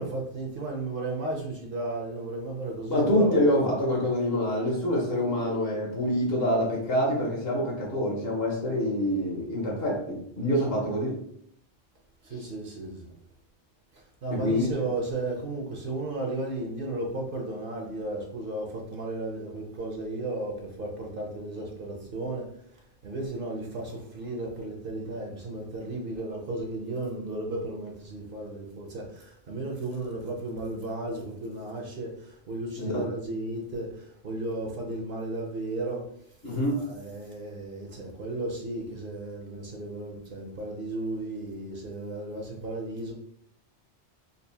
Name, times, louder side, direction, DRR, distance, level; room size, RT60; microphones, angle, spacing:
voice 1, 0.0-3.3 12.2-13.1 13.9-43.1, right 2 dB, 55° right, 0 dB, 0.8 m, -34 dB
voice 2, 2.9-11.2 14.3-14.7 32.8-33.0 36.4-36.8, left 1 dB, 60° left, -2 dB, 1.2 m, -26 dB
4.0 x 2.5 x 2.7 m, 0.67 s
omnidirectional pair, 1.2 m